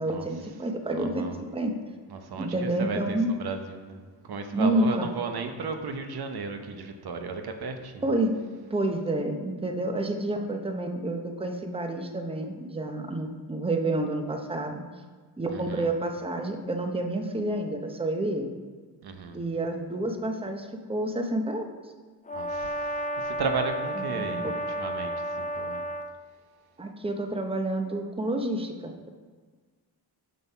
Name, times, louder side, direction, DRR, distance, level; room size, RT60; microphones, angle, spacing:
voice 1, 0.0-1.7 2.4-3.3 4.5-5.1 8.0-8.3 8.7-14.8 15.4-18.5 19.3-21.7 24.1-24.5 26.8-28.9, right 1 dB, 15° right, 4 dB, 1.0 m, -29 dB
voice 2, 0.9-1.4 2.1-8.0 15.5-15.9 19.0-19.4 22.3-22.9 23.2-25.8, right 4 dB, 65° right, 6 dB, 1.0 m, -34 dB
Brass instrument, 22.3-26.1, equal, 20° left, 0.8 m, -32 dB
7.0 x 6.5 x 5.7 m, 1.4 s
cardioid pair, 90°, 41 cm